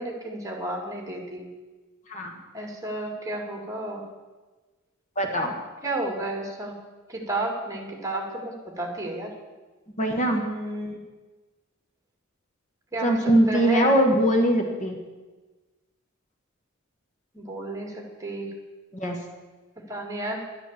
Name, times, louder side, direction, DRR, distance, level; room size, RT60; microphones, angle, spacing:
voice 1, 0.0-1.4 2.5-4.0 5.8-6.7 7.1-8.2 8.8-9.3 10.4-11.0 12.9-13.2 13.5-13.9 17.4-17.9 18.2-18.5 19.9-20.4, right 1 dB, 15° right, 2 dB, 2.0 m, -31 dB
voice 2, 5.2-5.5 10.0-10.4 13.0-15.0 18.9-19.2, right 1 dB, 35° left, 3 dB, 1.4 m, -21 dB
11.0 x 10.0 x 7.3 m, 1.3 s
head